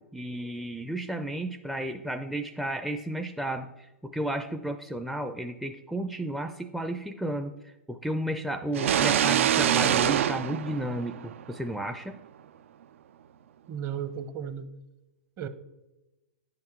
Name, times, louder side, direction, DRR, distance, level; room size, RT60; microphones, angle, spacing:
voice 1, 0.0-12.2, right 1 dB, ahead, 5 dB, 0.4 m, -33 dB
sound 1, 8.7-11.6, right 10 dB, 75° right, 0.4 m, -25 dB
voice 2, 13.7-14.7 15.4-15.5, right 8 dB, 35° right, 11 dB, 0.8 m, -34 dB
9.3 x 5.7 x 4.5 m, 0.99 s
hypercardioid pair, 120°, 7 cm